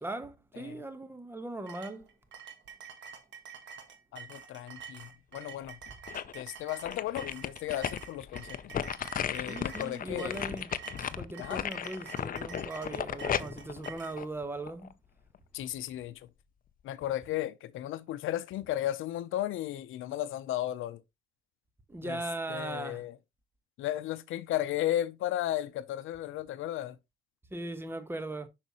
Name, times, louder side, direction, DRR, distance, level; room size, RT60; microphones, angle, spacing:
voice 1, 0.0-2.1 9.4-10.7 11.2-14.9 21.9-23.0 27.5-28.5, right 2 dB, 10° right, 1.1 m, -39 dB
sound 1, 1.7-14.2, right 7 dB, 65° right, 1.6 m, -48 dB
voice 2, 4.1-5.8 6.3-8.7 9.3-10.4 11.4-11.7 15.5-16.3 16.8-21.0 22.0-22.2 22.5-23.2 23.8-27.0, left 13 dB, 85° left, 0.7 m, -35 dB
sound 2, 5.6-6.4 6.9-14.9 15.3-15.4, left 8 dB, 45° left, 0.6 m, -35 dB
6.6 x 5.9 x 3.0 m
cardioid pair, 90°, 20 cm